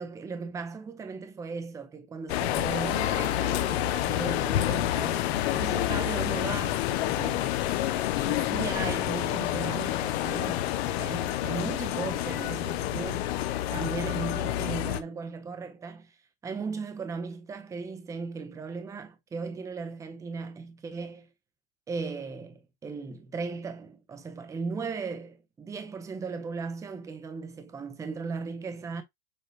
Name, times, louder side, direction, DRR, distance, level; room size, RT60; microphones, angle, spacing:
voice 1, 0.0-7.9 8.2-10.7 11.0-13.3 13.7-16.2 16.4-21.3 21.9-29.0, right 4 dB, 10° right, 0.6 m, -37 dB
sound 1, 2.3-15.0, left 13 dB, 65° left, 0.8 m, -28 dB
6.8 x 2.3 x 3.2 m
supercardioid pair, 145°, 34 cm